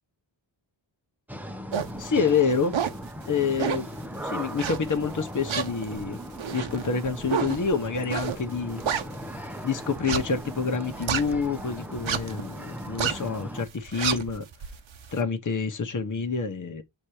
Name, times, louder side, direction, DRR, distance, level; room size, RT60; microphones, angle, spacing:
sound 1, 1.3-13.6, equal, 5° right, 0.9 m, -38 dB
sound 2, 1.7-2.0 2.5-3.0 3.6-3.9 4.6-5.1 5.5-9.5 9.9-11.6 11.9-12.4 12.8-13.3 13.7-15.1, right 8 dB, 80° right, 1.1 m, -30 dB
voice 1, 2.0-2.8 3.3-3.9 4.2-6.2 6.5-8.8 9.6-14.5 15.1-16.8, left 5 dB, 40° left, 1.2 m, -27 dB
7.7 x 3.0 x 4.8 m
cardioid pair, 70°, 46 cm